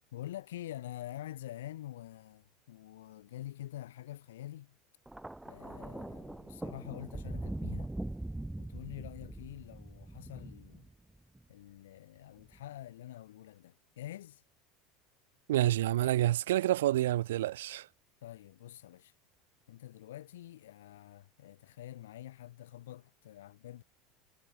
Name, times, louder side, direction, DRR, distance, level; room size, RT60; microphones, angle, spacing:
voice 1, 0.1-4.8 5.4-7.9 8.6-10.9 11.5-14.4 18.2-19.1 19.7-23.8, left 13 dB, 90° left, 6.5 m, -46 dB
Thunder, 5.1-11.4 12.4-12.7, right 1 dB, 5° right, 3.5 m, -42 dB
voice 2, 15.5-17.9, right 14 dB, 85° right, 0.5 m, -28 dB
supercardioid pair, 105°, 0 cm